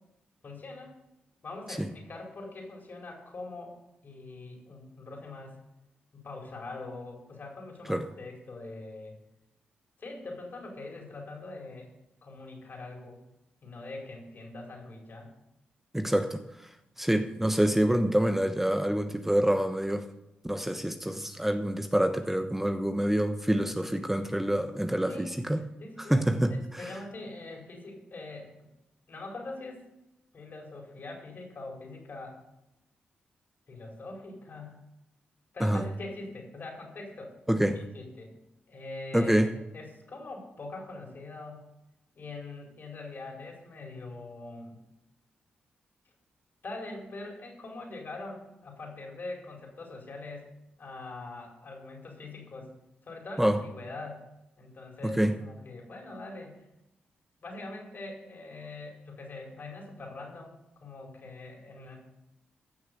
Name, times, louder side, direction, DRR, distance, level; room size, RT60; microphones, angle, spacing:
voice 1, 0.4-1.0 1.4-3.7 4.0-5.5 6.1-9.1 10.0-11.9 12.2-13.2 13.6-15.3 25.1-25.4 25.8-28.5 29.1-29.8 30.3-32.4 33.7-34.9 35.5-37.3 37.7-38.3 38.7-39.4 39.7-41.7 42.1-44.8 46.6-50.5 50.8-52.7 53.0-54.3 54.6-56.7 57.4-62.0, left 2 dB, 55° left, 0 dB, 5.0 m, -43 dB
voice 2, 15.9-16.4 17.0-20.1 20.4-25.7 26.0-26.9 35.6-35.8 37.5-37.8 39.1-39.5 53.4-53.6 55.2-55.3, right 1 dB, 5° right, 7 dB, 1.1 m, -26 dB
15.0 x 6.5 x 7.0 m, 0.91 s
supercardioid pair, 45°, 4 cm